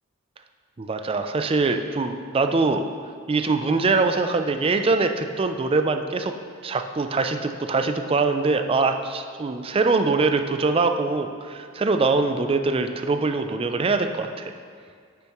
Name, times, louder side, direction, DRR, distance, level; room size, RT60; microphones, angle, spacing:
voice 1, 0.8-2.8 3.3-6.3 6.6-14.5, right 3 dB, 25° right, 7 dB, 0.4 m, -23 dB
9.9 x 6.9 x 3.0 m, 2.1 s
head